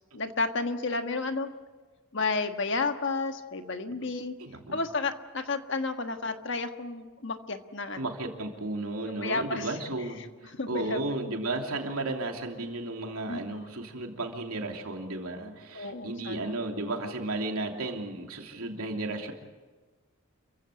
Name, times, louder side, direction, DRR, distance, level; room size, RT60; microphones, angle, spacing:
voice 1, 0.1-1.5 2.1-4.3 4.7-8.1 9.1-9.8 10.6-11.0 13.3-13.6 15.7-16.5, left 3 dB, 55° left, 7 dB, 1.5 m, -32 dB
voice 2, 4.4-4.8 8.0-19.3, right 2 dB, 80° right, 2 dB, 3.0 m, -34 dB
28.5 x 15.5 x 8.3 m, 1.4 s
head